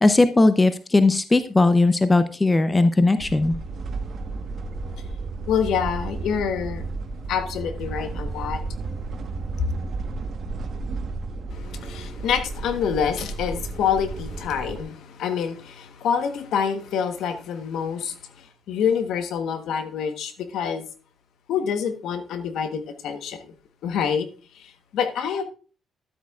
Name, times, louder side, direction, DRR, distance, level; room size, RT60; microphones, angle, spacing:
voice 1, 0.0-3.5, left 2 dB, 20° left, 11 dB, 0.5 m, -18 dB
sound 1, 3.2-14.8, right 3 dB, 55° right, 1.2 m, -33 dB
voice 2, 5.5-6.8 7.3-8.6 9.6-9.7 11.5-20.9 21.5-23.5 23.8-24.3 24.5-25.4, left 7 dB, 80° left, 9 dB, 1.1 m, -27 dB
12.0 x 8.2 x 2.4 m, 0.37 s
cardioid pair, 90°, 0 cm